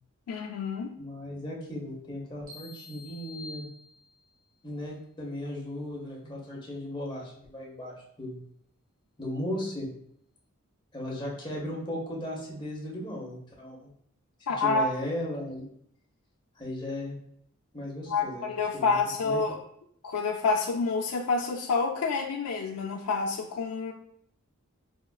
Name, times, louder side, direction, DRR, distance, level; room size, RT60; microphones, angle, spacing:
voice 1, 0.3-0.9 14.5-14.9 18.1-19.6 20.0-23.9, left 4 dB, 90° left, 1 dB, 0.4 m, -28 dB
voice 2, 1.0-3.7 4.6-8.4 9.2-9.9 10.9-13.9 14.6-15.7 16.6-17.2 17.7-18.5 18.7-19.0 19.2-19.4, left 1 dB, 20° left, -3 dB, 0.8 m, -36 dB
sound 1, 2.5-4.4, left 3 dB, 40° right, 0.7 m, -47 dB
5.1 x 2.4 x 2.2 m, 0.67 s
head